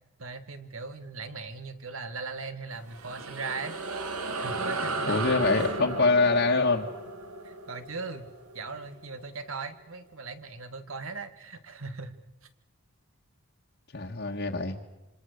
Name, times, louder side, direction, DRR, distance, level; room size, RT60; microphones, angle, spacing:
voice 1, 0.2-3.8 4.4-5.3 5.6-5.8 7.4-8.3 8.5-12.1, right 4 dB, 70° right, 9 dB, 1.9 m, -39 dB
sound 1, 2.7-9.5, right 3 dB, 90° right, 2.1 m, -35 dB
voice 2, 5.1-6.8 13.9-14.8, left 3 dB, 55° left, -1 dB, 1.6 m, -24 dB
27.0 x 26.0 x 6.6 m, 0.98 s
head